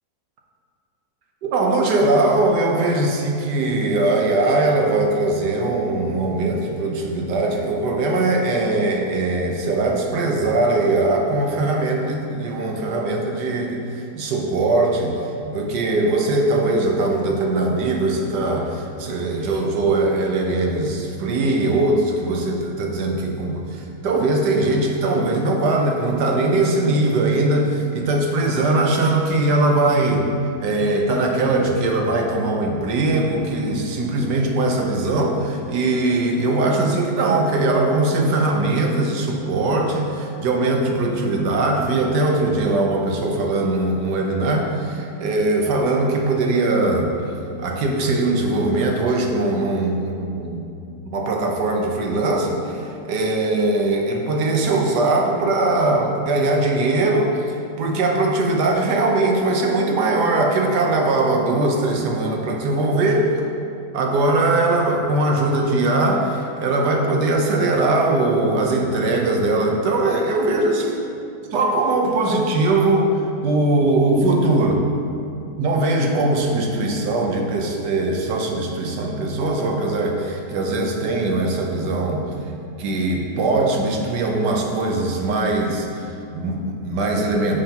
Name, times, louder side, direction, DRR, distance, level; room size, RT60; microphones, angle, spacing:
voice 1, 1.4-15.2 15.4-30.3 30.6-47.1 47.6-50.6 51.0-63.3 63.9-71.0 71.5-73.1 73.4-74.8 75.4-82.2 82.8-87.6, right 2 dB, 80° right, 1 dB, 1.5 m, -21 dB
9.2 x 7.0 x 3.0 m, 2.6 s
omnidirectional pair, 1.8 m